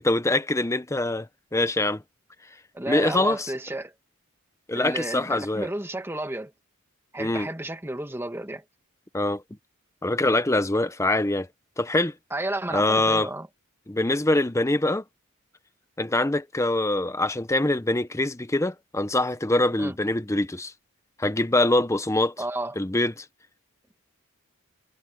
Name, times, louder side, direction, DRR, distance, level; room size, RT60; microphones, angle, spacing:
voice 1, 0.0-1.3 1.5-2.0 2.9-3.5 4.7-5.7 7.2-7.5 9.1-9.4 10.0-11.5 11.8-12.1 12.7-13.3 13.9-15.0 16.0-20.7 21.2-22.3 22.8-23.2, left 2 dB, 15° left, 0.8 m, -24 dB
voice 2, 2.7-3.9 4.7-6.5 7.1-8.6 12.3-13.5 19.8-19.9 22.4-22.8, right 1 dB, 10° right, 1.3 m, -32 dB
head